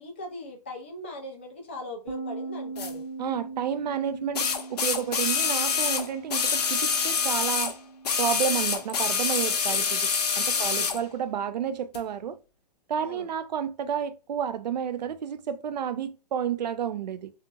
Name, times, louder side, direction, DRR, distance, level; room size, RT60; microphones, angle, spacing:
voice 1, 0.0-3.0 9.4-9.9 10.5-11.0 13.0-13.3, left 2 dB, 20° left, 0.4 m, -40 dB
sound 1, 2.1-11.5, right 3 dB, 55° right, 1.1 m, -42 dB
sound 2, 2.8-2.9 4.4-7.7 8.0-11.0 11.9-12.0, left 6 dB, 70° left, 0.7 m, -26 dB
voice 2, 3.2-7.7 8.2-10.1 10.4-12.4 12.9-17.3, right 8 dB, 80° right, 0.5 m, -31 dB
2.8 x 2.4 x 2.3 m
hypercardioid pair, 180°, 21 cm